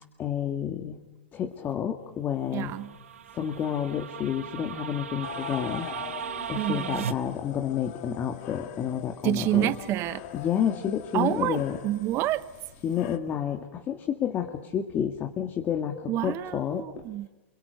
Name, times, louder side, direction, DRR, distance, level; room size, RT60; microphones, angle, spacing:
voice 1, 0.2-1.0 1.3-2.7 3.3-5.9 6.5-9.7 10.3-11.8 12.8-16.9, left 9 dB, 30° left, 2.1 m, -30 dB
voice 2, 2.5-2.9 6.5-7.1 9.2-10.2 11.1-12.4 16.1-17.3, right 14 dB, 35° right, 1.1 m, -28 dB
sound 1, 2.7-7.1, right 8 dB, 80° right, 1.5 m, -37 dB
sound 2, 5.2-13.2, left 11 dB, 50° left, 2.5 m, -43 dB
29.0 x 27.0 x 6.8 m
hypercardioid pair, 120°, 7 cm